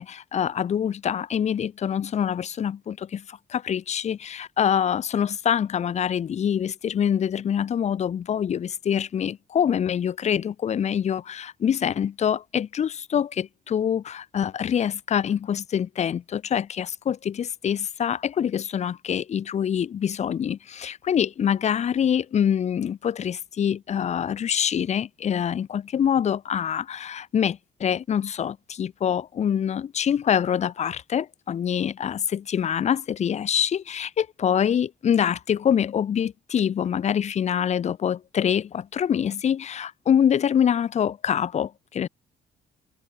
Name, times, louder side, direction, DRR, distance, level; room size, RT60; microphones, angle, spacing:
voice 1, 0.0-42.1, left 8 dB, 35° left, 0.4 m, -25 dB
cardioid pair, 90°, 20 cm